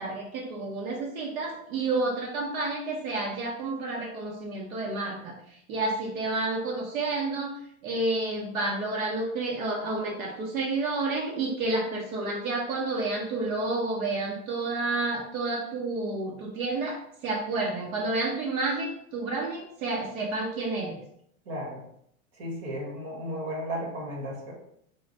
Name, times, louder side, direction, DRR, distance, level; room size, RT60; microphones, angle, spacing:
voice 1, 0.0-7.5 7.8-21.0, right 2 dB, 80° right, -2 dB, 1.0 m, -30 dB
voice 2, 21.4-21.8 22.4-24.5, equal, 50° right, -3 dB, 1.5 m, -34 dB
3.2 x 2.4 x 4.0 m, 0.70 s
supercardioid pair, 175°, 41 cm